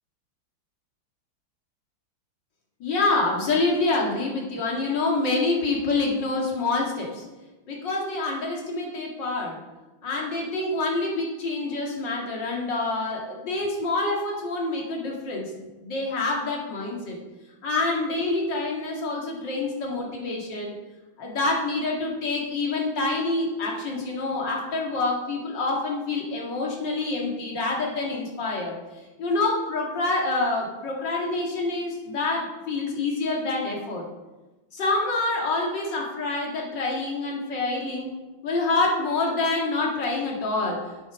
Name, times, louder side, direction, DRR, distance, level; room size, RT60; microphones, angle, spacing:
voice 1, 2.8-7.2 7.7-9.6 10.0-17.2 17.6-20.7 21.2-28.8 29.2-34.0 34.7-38.1 38.4-40.8, left 3 dB, 60° left, -2 dB, 2.8 m, -27 dB
8.6 x 8.3 x 6.2 m, 1.1 s
omnidirectional pair, 2.2 m